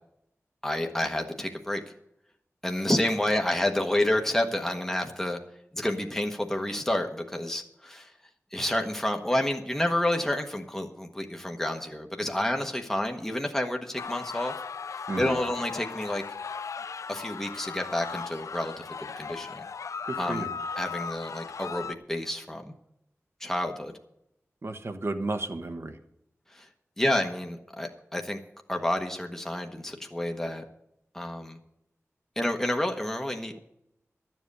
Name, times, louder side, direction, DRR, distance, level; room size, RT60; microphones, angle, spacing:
voice 1, 0.6-1.8 2.6-5.4 5.7-8.1 8.5-14.5 15.2-16.2 17.1-18.8 19.2-19.6 20.2-20.4 20.8-22.7 23.4-23.9 26.5-26.7 27.0-28.4 28.7-30.6 31.1-31.6 32.4-33.6, left 1 dB, 10° left, 3 dB, 1.1 m, -29 dB
sound 1, 14.0-22.0, left 5 dB, 85° left, 0.3 m, -37 dB
voice 2, 15.1-15.4 20.0-20.6 24.6-26.0, right 2 dB, 55° right, 7 dB, 1.1 m, -33 dB
12.0 x 7.5 x 6.7 m, 0.80 s
wide cardioid pair, 70°, 5 cm